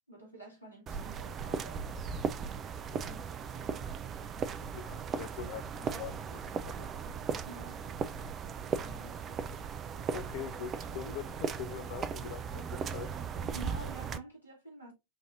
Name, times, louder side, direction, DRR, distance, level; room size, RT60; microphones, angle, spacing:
voice 1, 0.0-2.0 2.9-3.8 7.5-7.8 8.8-9.2 11.0-11.1 13.5-14.9, right 2 dB, 85° left, 1.9 m, -49 dB
sound 1, 0.9-14.2, right 6 dB, 25° right, 0.3 m, -37 dB
voice 2, 4.7-6.4 6.7-6.9 10.1-13.1, left 9 dB, 45° left, 0.4 m, -43 dB
4.6 x 2.6 x 2.6 m
figure-of-eight pair, 90°, 0 cm